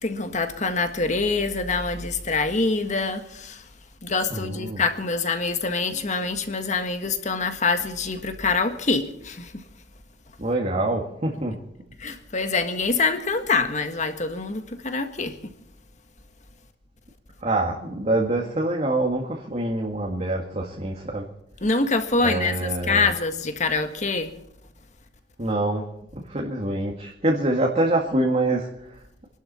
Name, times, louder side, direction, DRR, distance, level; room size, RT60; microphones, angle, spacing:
voice 1, 0.0-3.6 4.0-9.5 12.0-15.4 21.6-24.4, left 3 dB, 45° left, 1.6 m, -25 dB
voice 2, 4.3-4.8 10.4-11.6 17.4-21.3 22.2-23.1 25.4-25.9 26.1-29.0, right 2 dB, 40° right, 2.0 m, -25 dB
25.5 x 12.0 x 4.3 m
head